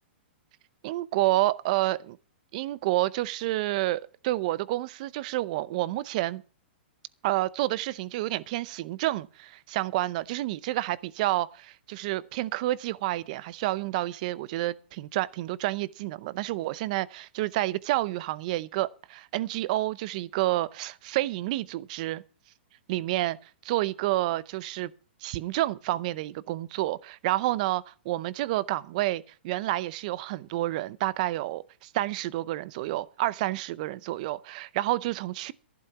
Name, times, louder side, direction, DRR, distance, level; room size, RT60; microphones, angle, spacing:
voice 1, 0.8-2.2 2.5-6.4 7.2-22.2 22.9-23.4 23.6-24.9 25.2-35.5, right 16 dB, 45° right, 0.6 m, -29 dB
12.0 x 11.5 x 5.9 m
hypercardioid pair, 155°, 6 cm